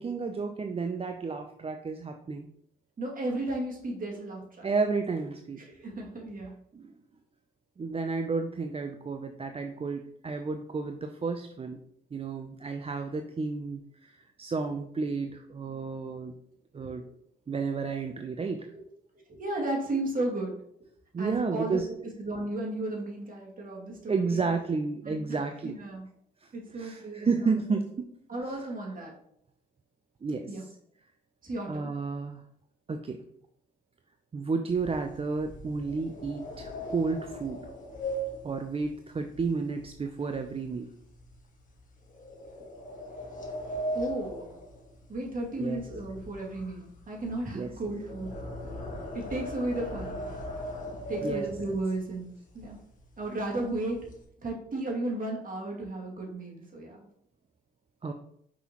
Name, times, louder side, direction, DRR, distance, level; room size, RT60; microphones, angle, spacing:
voice 1, 0.0-2.5 4.6-5.6 6.7-6.9 7.8-11.8 12.1-16.3 16.7-17.0 17.5-18.7 21.1-21.9 24.1-25.8 26.7-28.1 28.5-28.6 30.2-30.7 31.7-32.4 32.9-33.2 34.3-37.6 38.4-40.9 45.6-45.8 47.5-47.7 51.2-51.5 58.0-58.1, right 4 dB, 30° right, 6 dB, 0.6 m, -32 dB
voice 2, 3.0-4.7 5.7-6.5 19.3-20.5 21.2-21.8 22.2-24.5 25.0-26.1 26.5-27.8 28.3-29.1 30.5-30.6 31.4-31.9 43.9-44.5 45.1-48.3 49.1-50.2 51.1-52.3 52.5-52.8 53.2-54.0 54.4-57.0, right 2 dB, 45° right, -2 dB, 2.5 m, -34 dB
sound 1, 34.7-40.1 40.4-40.7 41.2-41.3 42.1-45.5 45.7-52.0 52.6-52.7 53.0-53.2 53.6-54.2, equal, 45° left, 1.6 m, -38 dB
6.1 x 5.5 x 3.0 m, 0.69 s
supercardioid pair, 55°, 19 cm